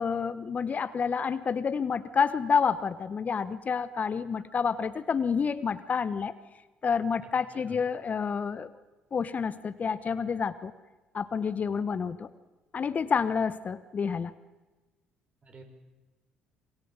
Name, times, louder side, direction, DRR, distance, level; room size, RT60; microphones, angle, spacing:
voice 1, 0.0-6.3 6.8-8.7 9.1-10.7 11.1-12.3 12.7-14.3, left 6 dB, 40° left, 13 dB, 1.1 m, -29 dB
voice 2, 7.2-7.9 15.4-15.6, right 2 dB, 35° right, 4 dB, 5.3 m, -52 dB
26.5 x 22.5 x 7.4 m, 1.2 s
hypercardioid pair, 55°, 4 cm